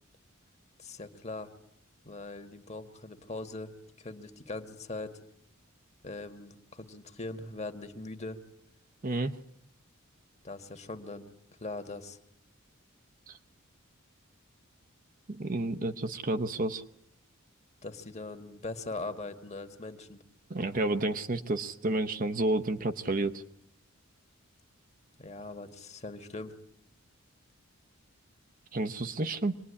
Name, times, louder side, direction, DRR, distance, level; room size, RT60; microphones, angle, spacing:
voice 1, 0.8-1.5 2.0-3.7 4.0-5.2 6.0-8.4 10.4-11.3 11.6-12.2 17.8-20.2 25.2-26.6, left 2 dB, 30° left, 8 dB, 1.8 m, -41 dB
voice 2, 15.3-16.8 20.5-23.4 28.7-29.5, right 2 dB, 40° right, 6 dB, 0.9 m, -30 dB
25.5 x 20.0 x 9.9 m, 0.77 s
head